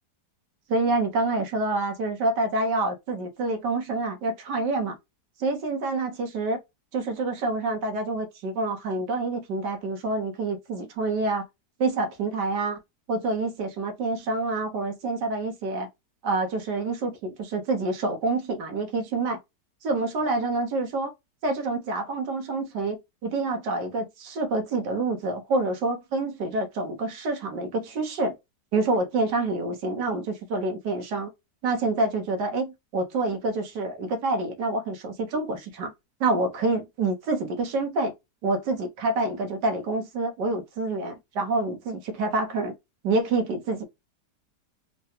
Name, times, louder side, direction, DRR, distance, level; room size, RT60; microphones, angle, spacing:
voice 1, 0.7-5.0 5.4-6.6 6.9-11.5 11.8-12.8 13.1-15.9 16.2-19.4 19.8-21.1 21.4-28.4 28.7-31.3 31.6-35.9 36.2-38.1 38.4-42.7 43.0-43.8, right 2 dB, 80° right, 1.5 m, -27 dB
3.8 x 2.2 x 2.7 m
omnidirectional pair, 1.8 m